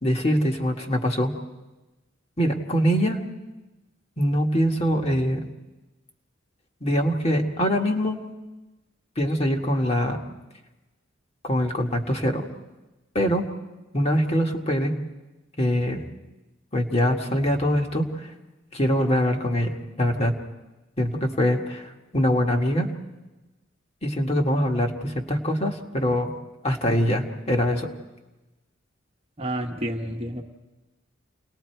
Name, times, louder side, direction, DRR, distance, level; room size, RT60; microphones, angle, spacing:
voice 1, 0.0-1.3 2.4-3.2 4.2-5.4 6.8-8.3 9.1-10.2 11.4-12.4 13.1-13.5 13.9-14.9 15.6-16.0 16.7-18.1 18.7-20.3 21.0-22.9 24.0-26.3 26.6-27.9, equal, 30° left, 2 dB, 1.6 m, -23 dB
voice 2, 29.4-30.4, right 1 dB, 30° right, 2 dB, 1.3 m, -30 dB
29.0 x 19.5 x 4.6 m, 1.1 s
head